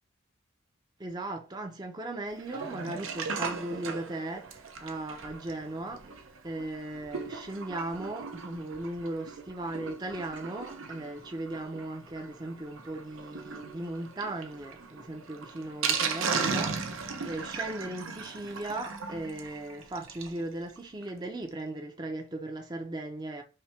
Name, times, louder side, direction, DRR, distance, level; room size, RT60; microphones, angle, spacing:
voice 1, 1.0-23.4, right 2 dB, 20° right, 0.5 m, -37 dB
Sink (filling or washing), 2.4-20.4 20.8-20.9 21.0-21.1 21.5-21.6, right 5 dB, 80° right, 0.6 m, -37 dB
5.6 x 2.1 x 3.2 m
head